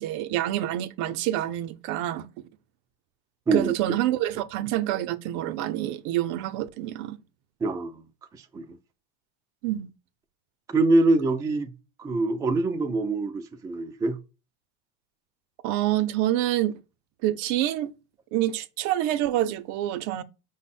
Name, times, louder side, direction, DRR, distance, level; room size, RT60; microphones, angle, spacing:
voice 1, 0.0-2.3 3.5-7.2 9.6-9.9 15.6-16.8 17.2-17.9 18.3-20.2, right 13 dB, 60° right, 0.5 m, -27 dB
voice 2, 7.6-8.0 8.3-8.8 10.7-11.7 12.0-14.2, right 2 dB, 10° right, 0.4 m, -24 dB
5.2 x 2.1 x 4.1 m
supercardioid pair, 115°, 33 cm